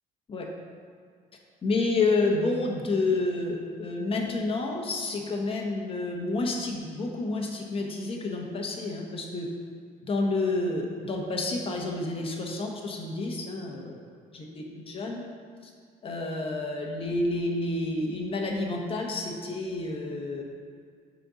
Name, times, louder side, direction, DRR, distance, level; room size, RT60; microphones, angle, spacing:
voice 1, 1.6-9.5 10.1-13.9 14.3-15.2 16.0-20.4, left 2 dB, 35° left, 0 dB, 1.1 m, -29 dB
6.6 x 4.1 x 5.0 m, 2.1 s
cardioid pair, 110°, 17 cm